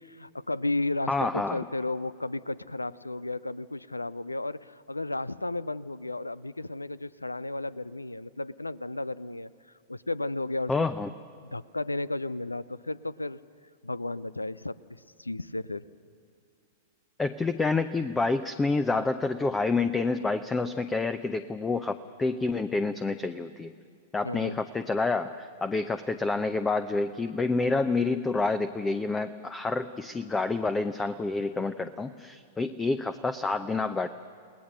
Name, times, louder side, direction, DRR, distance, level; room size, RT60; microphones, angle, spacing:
voice 1, 0.0-9.5 9.9-10.7 11.4-13.4 13.8-14.8 15.2-15.8 24.2-24.6, left 2 dB, 85° left, 19 dB, 0.5 m, -33 dB
voice 2, 1.1-1.6 10.7-11.1 17.2-23.7 24.1-34.1, left 3 dB, 10° left, 11 dB, 0.7 m, -28 dB
30.0 x 19.0 x 6.6 m, 2.4 s
figure-of-eight pair, 100°, 0 cm